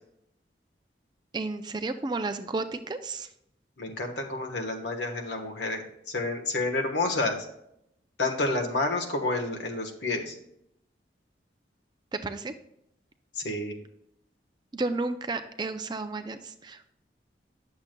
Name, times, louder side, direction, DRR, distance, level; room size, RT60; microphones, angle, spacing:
voice 1, 1.3-3.3 12.1-12.5 14.7-16.9, right 3 dB, 25° right, 8 dB, 0.4 m, -32 dB
voice 2, 3.8-7.5 8.2-10.4 13.4-13.7, left 2 dB, 75° left, 3 dB, 1.2 m, -29 dB
10.5 x 6.9 x 2.2 m, 0.77 s
head